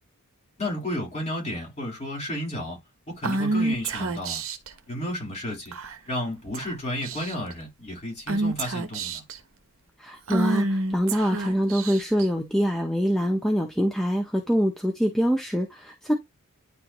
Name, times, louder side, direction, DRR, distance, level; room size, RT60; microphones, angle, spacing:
voice 1, 0.6-2.8 3.2-4.4 4.9-5.7 6.1-9.2, left 1 dB, 30° left, 4.0 m, -32 dB
Female speech woman speaking / Whispering, 3.2-4.7 5.7-6.1 6.5-6.7 7.0-7.5 8.3-9.4 10.3-12.3, right 2 dB, 60° right, 1.1 m, -28 dB
voice 2, 10.0-16.1, equal, ahead, 0.9 m, -24 dB
10.0 x 3.5 x 3.1 m
head